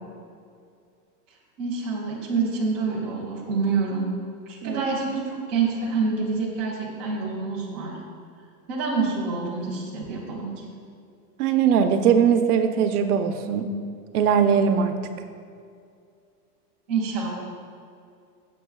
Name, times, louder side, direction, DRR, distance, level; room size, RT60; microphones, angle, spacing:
voice 1, 1.6-4.1 4.5-8.0 8.7-10.5 16.9-17.4, right 4 dB, 10° right, -7 dB, 0.3 m, -27 dB
voice 2, 11.4-13.6 14.1-14.9, right 7 dB, 70° right, 8 dB, 0.9 m, -20 dB
15.5 x 7.0 x 2.3 m, 2.4 s
supercardioid pair, 165°, 47 cm